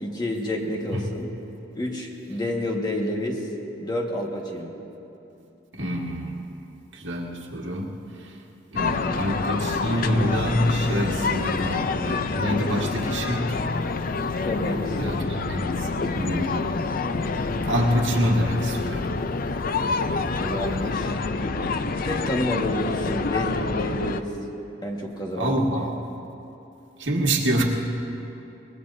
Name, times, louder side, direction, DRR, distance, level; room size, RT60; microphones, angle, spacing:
voice 1, 0.0-1.3 1.7-3.5 3.8-4.7 14.4-15.0 20.4-24.3 24.8-25.6, left 1 dB, 25° left, -1 dB, 1.6 m, -29 dB
voice 2, 5.7-6.4 6.9-7.9 8.2-8.3 8.7-13.6 15.0-15.9 16.1-16.7 17.3-19.1 25.4-26.0 27.0-27.6, equal, 80° right, -1 dB, 1.7 m, -26 dB
sound 1, 8.8-24.2, left 4 dB, 50° left, 0.5 m, -27 dB
23.5 x 20.0 x 2.7 m, 2.9 s
head